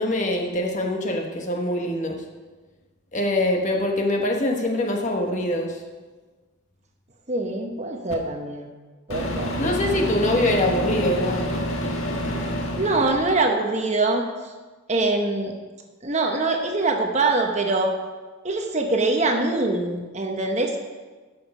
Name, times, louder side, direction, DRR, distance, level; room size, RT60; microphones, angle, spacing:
voice 1, 0.0-2.2 3.1-5.8 9.6-11.5, left 1 dB, 35° left, 2 dB, 1.2 m, -24 dB
voice 2, 7.3-8.7 9.1-9.6 12.8-14.2 14.9-15.5 16.0-17.9 18.4-20.8, right 2 dB, 30° right, 3 dB, 1.0 m, -23 dB
Microwave oven, 8.1-8.2 9.1-13.4, equal, 75° left, 1.5 m, -28 dB
11.0 x 7.2 x 5.4 m, 1.3 s
head